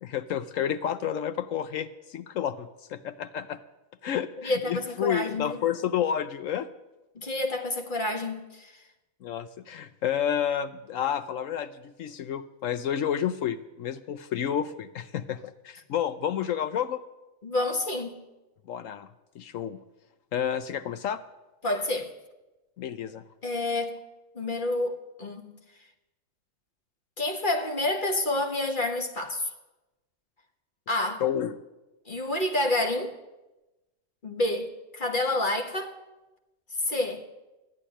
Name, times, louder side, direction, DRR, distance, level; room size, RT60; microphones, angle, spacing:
voice 1, 0.0-3.6 4.0-6.7 9.2-17.0 18.7-19.1 19.4-19.8 20.3-21.2 22.8-23.2 31.2-31.5, left 9 dB, 75° left, 1.0 m, -30 dB
voice 2, 4.4-5.6 7.1-8.8 17.4-18.2 21.6-22.1 23.4-24.0 24.3-25.5 27.2-29.5 30.9-31.2 32.1-33.2 34.2-35.9 36.9-37.2, left 2 dB, 40° left, 1.5 m, -29 dB
13.5 x 9.9 x 10.0 m
omnidirectional pair, 1.4 m